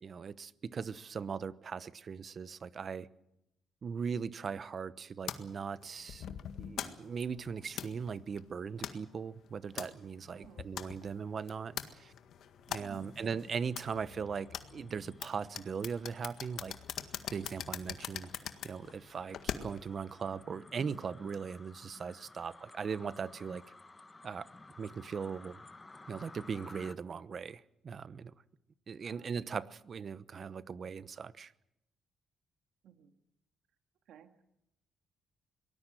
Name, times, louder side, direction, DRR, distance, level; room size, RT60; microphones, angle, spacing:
voice 1, 0.0-3.1 3.8-6.2 6.6-12.1 12.7-16.8 17.3-18.3 18.6-23.6 24.2-24.5 24.8-25.6 26.1-28.3 28.9-31.5, right 6 dB, 45° right, 1.0 m, -39 dB
sound 1, 5.3-20.0, left 9 dB, 70° left, 1.7 m, -44 dB
voice 2, 10.3-10.7 12.8-13.1 29.0-29.3 30.0-30.1 32.8-33.1 34.1-34.4, right 8 dB, 75° right, 2.0 m, -55 dB
sound 2, 12.6-27.0, left 3 dB, 20° left, 1.1 m, -56 dB
23.5 x 19.0 x 7.7 m
cardioid pair, 90°, 0 cm